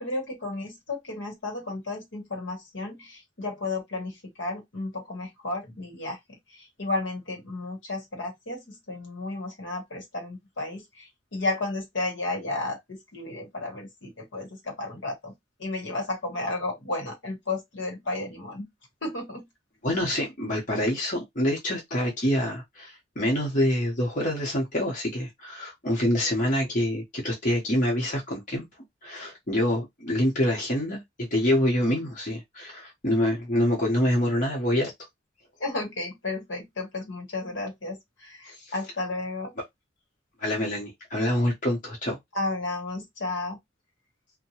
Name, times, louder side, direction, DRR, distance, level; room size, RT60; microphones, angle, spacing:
voice 1, 0.0-15.3 15.6-18.7 19.0-19.4 35.6-39.5 42.3-43.6, left 2 dB, 70° left, 1.1 m, -33 dB
voice 2, 19.8-28.7 29.0-31.0 31.3-34.9 38.5-38.6 40.4-42.2, left 1 dB, 40° left, 1.0 m, -26 dB
2.8 x 2.2 x 2.8 m
head